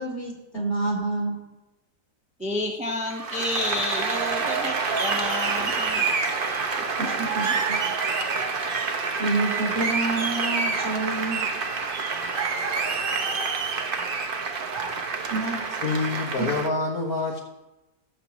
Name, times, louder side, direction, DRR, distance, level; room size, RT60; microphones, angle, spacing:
voice 1, 0.0-1.4 7.0-7.8 9.2-11.4 15.3-15.6 16.4-16.5, right 2 dB, 40° left, -4 dB, 3.9 m, -28 dB
voice 2, 2.4-6.0 6.8-6.9 7.5-7.6, left 2 dB, 5° right, 0 dB, 1.1 m, -30 dB
Applause, 3.1-16.7, right 4 dB, 40° right, 0.8 m, -27 dB
voice 3, 15.8-17.4, left 3 dB, 60° left, -2 dB, 1.8 m, -26 dB
20.5 x 7.4 x 3.0 m, 0.99 s
omnidirectional pair, 1.8 m